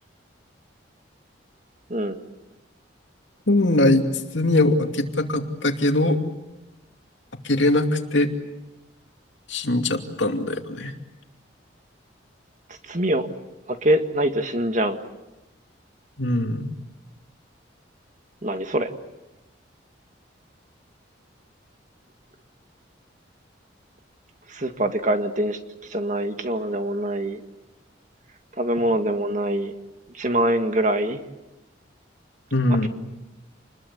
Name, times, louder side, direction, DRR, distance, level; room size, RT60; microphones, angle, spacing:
voice 1, 3.5-4.0 4.3-6.2 7.4-8.3 9.5-10.9 16.2-16.7 32.5-32.9, left 2 dB, 75° left, 5 dB, 2.6 m, -21 dB
voice 2, 12.9-13.3 13.7-15.0 18.4-18.9 24.5-25.6 25.9-27.4 28.6-29.7 30.1-31.2 32.8-32.9, right 1 dB, 40° right, 7 dB, 1.9 m, -24 dB
28.5 x 21.0 x 8.3 m, 1.0 s
head